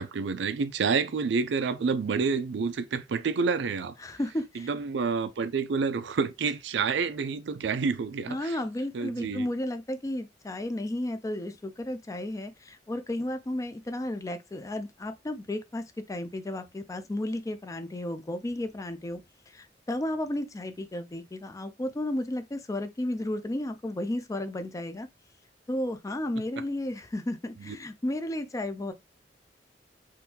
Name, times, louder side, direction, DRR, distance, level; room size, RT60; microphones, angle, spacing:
voice 1, 0.0-3.9 4.6-8.6 8.9-9.5 27.6-27.8, right 5 dB, 85° right, 0.4 m, -28 dB
voice 2, 4.0-4.7 8.3-19.2 19.5-25.1 25.7-28.9, left 1 dB, 20° left, 0.4 m, -33 dB
3.7 x 2.6 x 2.8 m
head